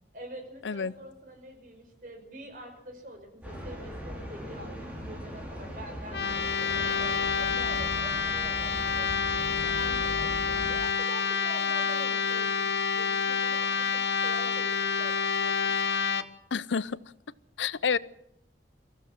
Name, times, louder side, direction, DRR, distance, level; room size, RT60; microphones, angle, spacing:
voice 1, 0.1-6.2 6.5-9.1 9.4-15.8, right 1 dB, 50° right, 5.4 m, -46 dB
sound 1, 3.4-10.7, equal, 10° right, 5.8 m, -39 dB
sound 2, 6.1-16.2, left 5 dB, 70° left, 1.3 m, -28 dB
voice 2, 16.5-17.0 17.6-18.0, left 6 dB, 90° left, 0.7 m, -28 dB
24.0 x 15.0 x 7.4 m
head